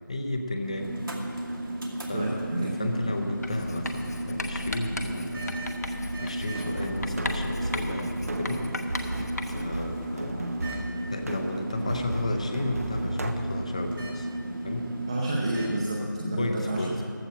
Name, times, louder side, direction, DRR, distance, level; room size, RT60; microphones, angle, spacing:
voice 1, 0.1-1.0 2.1-14.3 14.6-14.9 16.4-17.0, left 1 dB, 20° left, 5 dB, 0.7 m, -33 dB
sound 1, 0.6-15.8, right 1 dB, 75° right, 2.3 m, -34 dB
voice 2, 2.1-2.9 15.1-16.8, right 1 dB, 15° right, -3 dB, 0.7 m, -29 dB
Writing, 3.4-9.8, left 2 dB, 50° left, 1.1 m, -36 dB
sound 2, 6.4-13.3, right 2 dB, 45° right, 0.9 m, -36 dB
14.5 x 13.0 x 4.5 m, 2.4 s
figure-of-eight pair, 170°, 11 cm